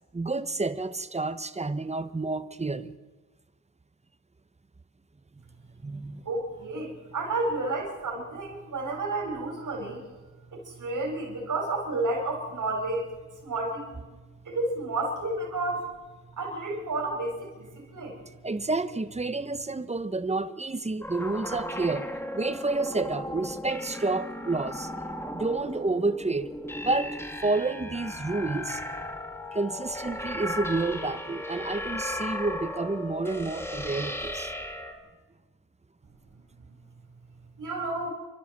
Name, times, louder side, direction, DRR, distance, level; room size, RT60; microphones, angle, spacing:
voice 1, 0.1-3.0 5.8-6.2 18.4-22.1 22.3-24.9 25.3-26.5 26.8-27.2 27.4-28.8 29.5-34.5, right 3 dB, 20° right, 1.0 m, -29 dB
voice 2, 6.2-10.0 10.5-13.0 13.4-13.9 14.5-15.9 16.4-18.2 37.6-38.1, right 2 dB, 85° right, 4.3 m, -31 dB
sound 1, 21.0-34.9, left 1 dB, 10° left, 2.0 m, -36 dB
28.5 x 12.5 x 7.4 m
wide cardioid pair, 90°, 30 cm